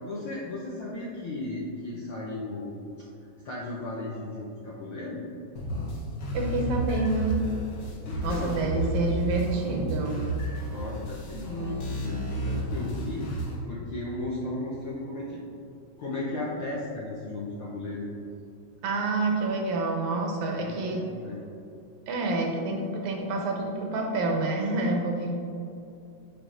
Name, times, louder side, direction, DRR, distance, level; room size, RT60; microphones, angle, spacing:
voice 1, 0.1-3.1 3.4-5.2 8.0-9.2 10.7-15.4 16.0-18.1 20.6-21.4, left 2 dB, 75° left, -6 dB, 1.2 m, -35 dB
sound 1, 5.6-13.6, right 1 dB, 55° left, 1.5 m, -32 dB
voice 2, 6.3-7.4 8.2-10.2 18.8-21.0 22.1-25.4, right 2 dB, 85° right, 0 dB, 2.2 m, -28 dB
10.0 x 5.2 x 2.5 m, 2.7 s
omnidirectional pair, 3.4 m